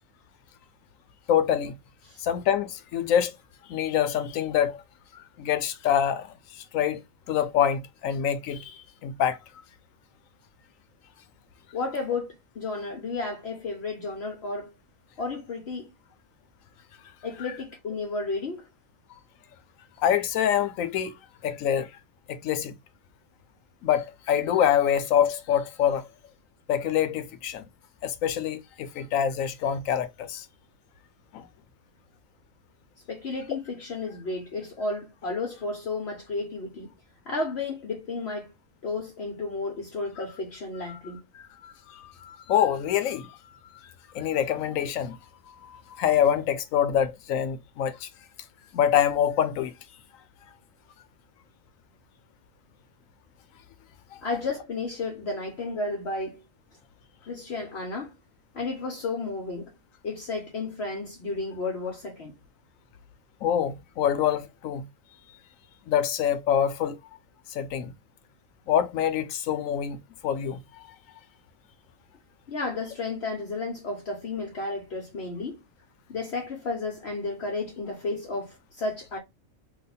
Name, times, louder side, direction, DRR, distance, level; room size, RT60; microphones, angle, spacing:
voice 1, 1.3-1.8 2.2-3.3 3.7-4.8 5.4-7.0 7.3-9.4 20.0-21.2 21.4-21.9 22.3-22.8 23.8-26.1 26.7-27.6 28.0-30.5 31.3-31.5 41.3-43.4 43.8-45.2 45.5-48.1 48.7-49.7 54.1-54.2 63.4-64.8 65.9-67.0 67.5-67.9 68.7-70.6, left 9 dB, 90° left, 1.0 m, -26 dB
voice 2, 11.7-14.7 15.2-15.9 17.2-18.7 33.1-36.9 37.3-38.5 38.8-41.2 54.2-56.4 57.3-58.1 58.5-59.7 60.0-62.3 72.5-75.6 76.1-79.2, left 3 dB, 55° left, 1.0 m, -32 dB
3.0 x 2.2 x 4.0 m
omnidirectional pair, 1.4 m